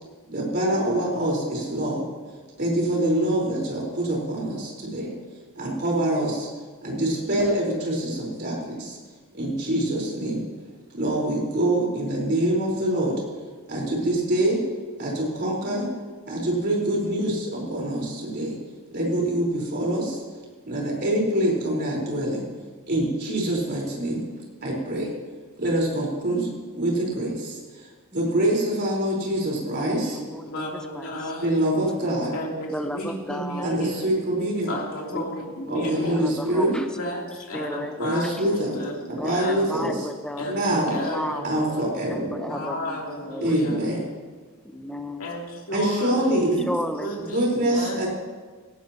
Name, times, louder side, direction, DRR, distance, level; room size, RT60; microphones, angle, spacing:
voice 1, 0.3-2.0 2.6-5.1 5.5-6.5 6.8-9.0 9.3-10.4 10.9-13.1 13.7-14.6 15.0-15.9 16.3-18.6 18.9-20.2 20.7-22.4 22.9-24.2 24.6-25.1 25.6-26.5 26.7-27.6 28.1-30.2 31.4-32.3 33.6-34.7 35.7-36.8 38.0-38.8 39.2-39.9 40.5-41.0 41.4-42.6 43.4-44.0 45.7-46.7 47.3-48.1, right 1 dB, 50° right, -2 dB, 4.3 m, -25 dB
voice 2, 29.8-30.7 30.9-31.1 32.7-33.7 35.1-36.9 37.5-37.9 38.2-38.4 39.2-40.5 41.1-41.5 42.1-43.5 44.6-45.2 46.6-47.1, equal, 5° left, 5 dB, 0.9 m, -33 dB
voice 3, 30.4-31.5 32.3-34.1 34.7-36.2 36.9-39.7 40.4-41.9 42.5-43.8 45.2-46.3 47.0-48.1, left 1 dB, 70° left, -3 dB, 3.1 m, -33 dB
17.5 x 16.5 x 2.9 m, 1.4 s
head